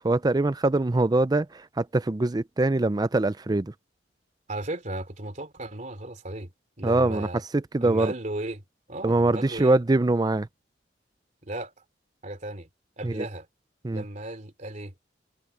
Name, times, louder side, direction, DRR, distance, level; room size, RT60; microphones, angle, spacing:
voice 1, 0.0-3.7 6.8-7.3 7.5-8.1 9.0-10.5 13.0-13.3 13.8-14.0, right 2 dB, 20° right, 0.5 m, -23 dB
voice 2, 4.5-6.5 6.8-7.4 7.8-8.6 8.9-9.8 11.4-11.7 12.2-12.7 13.0-13.5 13.9-14.9, right 1 dB, 45° right, 3.0 m, -35 dB
head